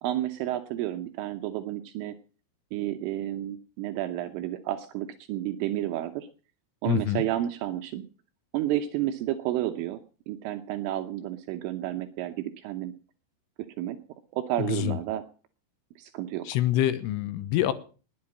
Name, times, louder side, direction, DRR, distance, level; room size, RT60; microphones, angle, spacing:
voice 1, 0.0-2.2 2.7-6.3 6.8-8.0 8.5-10.0 10.3-12.9 13.8-14.0 14.3-15.2 16.0-16.5, right 13 dB, 80° right, 7 dB, 3.3 m, -31 dB
voice 2, 6.9-7.2 14.6-15.0 16.5-17.7, left 13 dB, 80° left, 13 dB, 3.5 m, -26 dB
20.5 x 8.8 x 7.6 m, 0.39 s
omnidirectional pair, 6.0 m